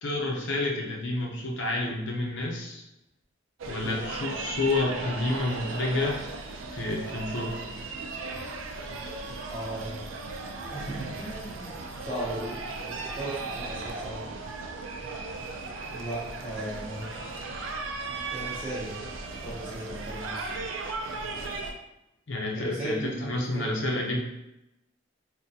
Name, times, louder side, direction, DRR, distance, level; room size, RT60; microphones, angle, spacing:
voice 1, 0.0-2.8 3.7-6.3 6.7-7.5 9.0-9.1 22.3-24.2, left 2 dB, 75° left, -1 dB, 0.6 m, -29 dB
sound 1, 3.6-21.7, right 3 dB, 85° right, 0.4 m, -36 dB
voice 2, 9.5-10.1 10.7-11.8 12.1-12.6 12.9-14.3 15.9-17.2 18.3-19.0 19.4-20.6 22.5-23.7, right 1 dB, 5° right, -12 dB, 0.7 m, -36 dB
3.6 x 2.1 x 2.7 m, 0.88 s
head